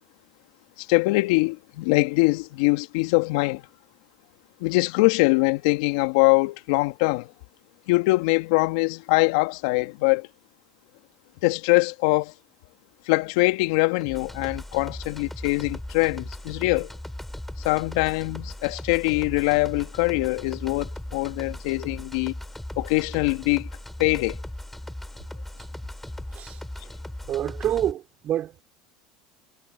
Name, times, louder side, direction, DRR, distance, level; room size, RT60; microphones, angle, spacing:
voice 1, 0.8-3.6 4.6-7.3 7.9-10.3 11.4-12.3 13.1-16.9 17.6-22.3 22.8-23.7 24.0-24.4, left 24 dB, 70° left, 2.1 m, -23 dB
sound 1, 14.0-27.9, left 1 dB, 5° left, 4.6 m, -38 dB
voice 2, 27.3-28.6, right 11 dB, 45° right, 5.1 m, -27 dB
hypercardioid pair, 85°, 3 cm